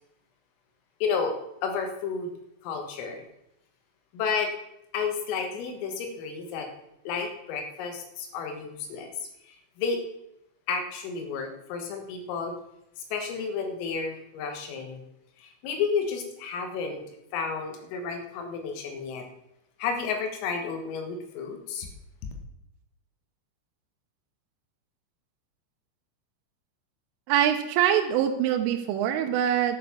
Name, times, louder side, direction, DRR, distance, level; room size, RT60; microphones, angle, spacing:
voice 1, 1.0-2.3 2.6-3.2 4.1-4.5 4.9-6.7 7.1-10.0 10.7-12.6 13.0-15.0 15.4-17.0 17.3-19.3 19.8-21.9, left 5 dB, 90° left, 5 dB, 4.2 m, -31 dB
voice 2, 27.3-29.8, right 10 dB, 85° right, 4 dB, 3.3 m, -24 dB
11.0 x 6.9 x 7.3 m, 0.82 s
omnidirectional pair, 5.8 m